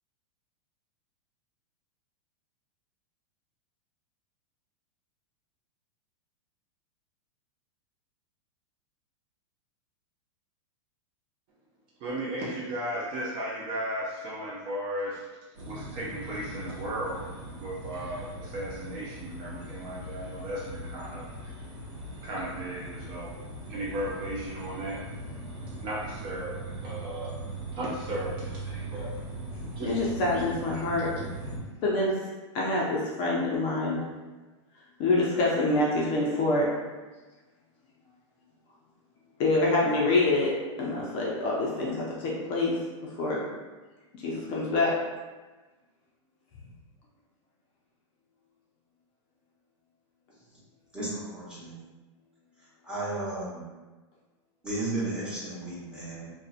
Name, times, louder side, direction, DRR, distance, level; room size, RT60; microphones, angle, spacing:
voice 1, 12.0-15.3 15.6-17.2 17.6-21.3 22.2-23.3 23.7-25.0 25.8-27.3 27.7-29.1 29.5-29.9 30.3-30.4, right 1 dB, 30° right, -5 dB, 0.4 m, -35 dB
sound 1, 15.6-31.6, right 1 dB, 75° right, 0.7 m, -40 dB
voice 2, 29.7-32.3 32.5-34.0 35.0-36.7 39.4-42.8 43.2-43.4 44.2-44.9, left 2 dB, 35° left, -4 dB, 0.4 m, -26 dB
voice 3, 50.9-51.7 52.6-53.7 54.6-56.3, right 2 dB, 5° right, -10 dB, 0.9 m, -34 dB
2.6 x 2.1 x 2.4 m, 1.2 s
supercardioid pair, 145°, 16 cm